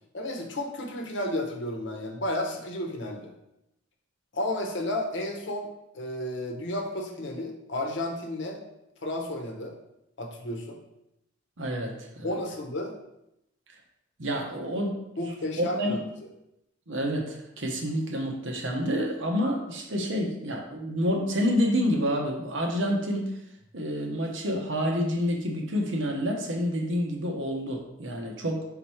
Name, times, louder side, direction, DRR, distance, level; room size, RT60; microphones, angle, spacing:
voice 1, 0.1-3.3 4.3-8.6 9.0-9.8 10.2-10.8 12.2-12.9 15.2-16.0, left 1 dB, 65° left, 2 dB, 0.9 m, -32 dB
voice 2, 11.6-12.3 14.2-15.0 15.6-16.0 16.9-23.3 23.7-28.6, equal, 80° right, 1 dB, 1.0 m, -28 dB
5.3 x 4.0 x 4.4 m, 0.85 s
head